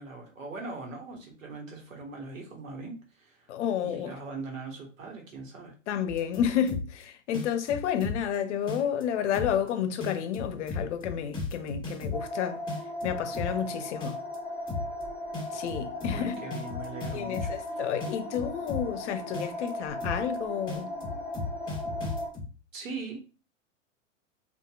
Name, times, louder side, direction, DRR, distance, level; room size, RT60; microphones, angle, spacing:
voice 1, 0.0-3.5 3.8-5.7 16.1-17.8 22.7-23.4, right 3 dB, 80° right, 1.2 m, -41 dB
voice 2, 3.5-4.1 5.9-12.6 13.0-14.2 15.5-16.3 17.1-20.9, left 9 dB, 60° left, 0.6 m, -30 dB
sound 1, 6.1-7.0 7.3-8.3 8.7-9.0 9.3-9.7 10.0-12.3 12.7-13.7 14.0-14.4 14.7-15.0 15.3-17.7 18.0-19.0 19.3-19.7 20.0-20.3 20.7-22.5, left 3 dB, 10° left, 1.2 m, -35 dB
sound 2, 12.1-22.3, left 1 dB, 5° right, 1.3 m, -37 dB
2.7 x 2.5 x 2.3 m
hypercardioid pair, 110°, 39 cm